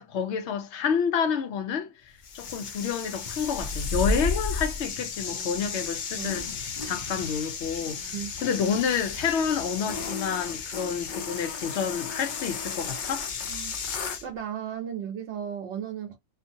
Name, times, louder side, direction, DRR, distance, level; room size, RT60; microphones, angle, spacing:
voice 1, 0.0-1.9 2.3-6.5 6.8-8.0 8.4-13.3, left 7 dB, 70° left, 0.9 m, -29 dB
sound 1, 2.2-14.3, left 4 dB, 55° left, 0.6 m, -33 dB
voice 2, 13.5-16.2, right 9 dB, 70° right, 1.0 m, -35 dB
2.6 x 2.5 x 2.7 m
omnidirectional pair, 1.3 m